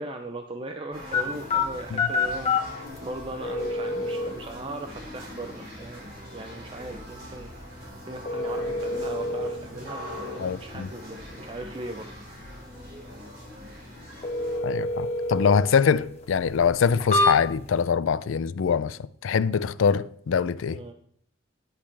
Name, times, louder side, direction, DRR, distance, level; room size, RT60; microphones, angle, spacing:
voice 1, 0.0-12.1 20.7-20.9, right 2 dB, 25° right, 0.6 m, -39 dB
sound 1, 0.9-14.6, left 1 dB, 45° right, 4.1 m, -42 dB
sound 2, 1.1-17.8, left 3 dB, 30° left, 1.4 m, -31 dB
voice 2, 10.4-10.9 14.6-20.8, left 6 dB, 75° left, 0.4 m, -24 dB
10.5 x 8.6 x 3.4 m
head